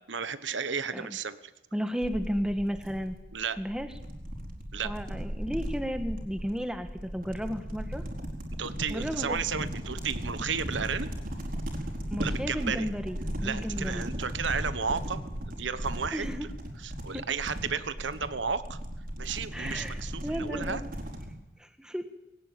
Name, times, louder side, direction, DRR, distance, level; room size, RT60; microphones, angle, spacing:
voice 1, 0.1-1.5 3.3-3.6 4.7-4.9 8.6-11.1 12.2-12.9 13.4-16.5 16.8-18.8 19.2-20.8, right 6 dB, 80° right, 13 dB, 1.2 m, -33 dB
voice 2, 1.7-3.2 3.6-3.9 4.8-8.0 8.9-9.4 12.1-13.2 13.4-14.1 16.1-16.5 17.1-17.2 19.5-20.9 21.6-22.0, equal, 5° right, 8 dB, 1.6 m, -33 dB
sound 1, 2.0-21.3, equal, 50° right, 4.6 m, -37 dB
21.0 x 17.5 x 9.3 m, 0.96 s
head